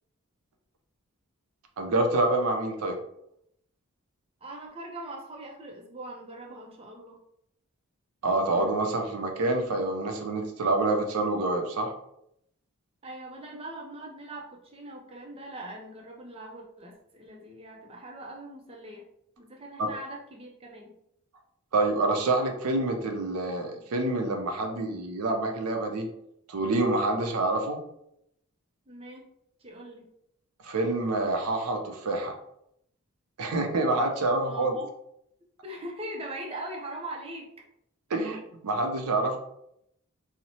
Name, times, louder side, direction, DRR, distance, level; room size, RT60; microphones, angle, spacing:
voice 1, 1.8-3.0 8.2-11.9 19.8-19.9 21.7-26.1 26.5-27.8 30.6-32.3 33.4-34.7 38.1-39.4, right 2 dB, 90° right, 4 dB, 0.5 m, -27 dB
voice 2, 4.4-7.2 13.0-19.0 19.4-20.9 28.9-29.2 29.6-30.1 34.3-34.9 35.6-37.5, right 1 dB, 25° right, 0 dB, 0.4 m, -41 dB
2.8 x 2.0 x 2.7 m, 0.76 s
head